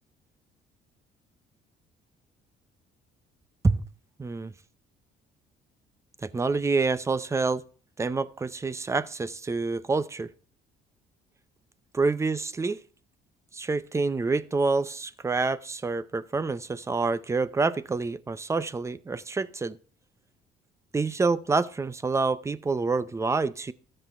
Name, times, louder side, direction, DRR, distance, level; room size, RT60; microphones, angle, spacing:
voice 1, 4.2-4.5 6.2-7.6 8.0-10.3 11.9-12.8 13.5-19.8 20.9-23.7, right 3 dB, 15° right, 0.6 m, -27 dB
13.5 x 7.7 x 4.3 m
cardioid pair, 110°, 17 cm